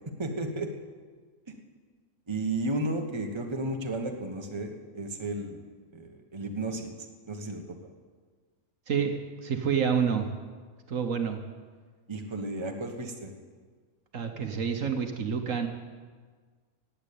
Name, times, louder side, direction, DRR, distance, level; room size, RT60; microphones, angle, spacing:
voice 1, 0.2-0.7 2.3-6.9 7.3-7.8 12.1-13.3, right 2 dB, 20° right, 3 dB, 1.2 m, -33 dB
voice 2, 8.9-9.2 9.4-10.3 10.9-11.4 14.1-15.7, right 7 dB, 60° right, 5 dB, 1.4 m, -28 dB
17.0 x 8.9 x 8.5 m, 1.5 s
omnidirectional pair, 1.6 m